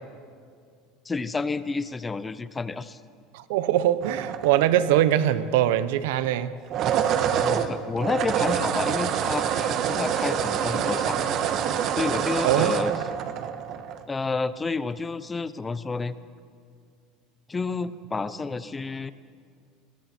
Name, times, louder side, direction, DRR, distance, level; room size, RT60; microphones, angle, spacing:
voice 1, 1.1-3.0 7.4-11.3 12.0-12.9 14.1-16.1 17.5-19.1, left 4 dB, 15° left, 14 dB, 0.8 m, -30 dB
voice 2, 3.3-6.6 12.4-13.0, right 12 dB, 80° right, 14 dB, 0.9 m, -22 dB
sound 1, 4.0-5.0 6.6-14.0, right 8 dB, 50° right, 1.4 m, -26 dB
28.5 x 21.5 x 4.6 m, 2.2 s
supercardioid pair, 125°, 0 cm